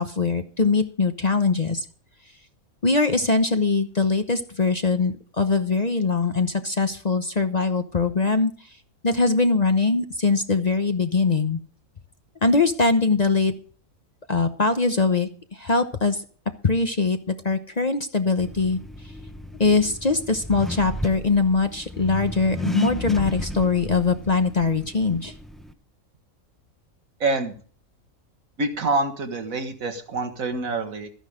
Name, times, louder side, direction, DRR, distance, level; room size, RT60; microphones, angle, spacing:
voice 1, 0.0-1.8 2.8-8.5 9.0-11.6 12.4-13.5 14.3-16.2 16.6-18.8 19.6-25.3, left 4 dB, 35° left, 8 dB, 0.9 m, -22 dB
Accelerating revving vroom, 18.4-25.7, left 1 dB, ahead, 0.7 m, -34 dB
voice 2, 27.2-27.6 28.6-31.1, right 3 dB, 75° right, 6 dB, 2.1 m, -26 dB
14.0 x 10.0 x 5.1 m, 0.42 s
omnidirectional pair, 1.4 m